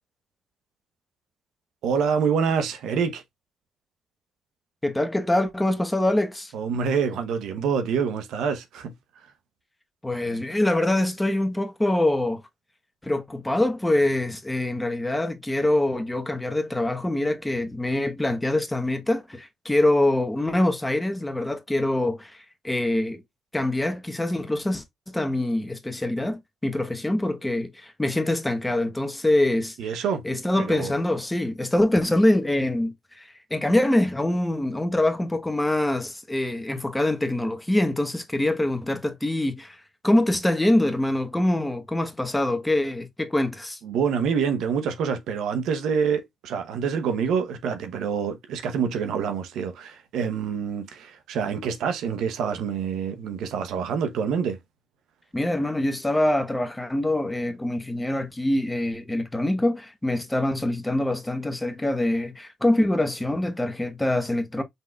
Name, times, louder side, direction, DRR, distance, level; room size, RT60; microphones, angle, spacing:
voice 1, 1.8-3.2 6.5-8.9 29.8-30.2 30.6-30.9 43.8-54.6, right 6 dB, 85° right, 0.9 m, -26 dB
voice 2, 4.8-6.5 10.0-12.4 13.0-23.2 23.5-43.8 55.3-64.6, left 1 dB, 10° left, 1.1 m, -24 dB
5.4 x 3.7 x 2.3 m
cardioid pair, 90°, 0 cm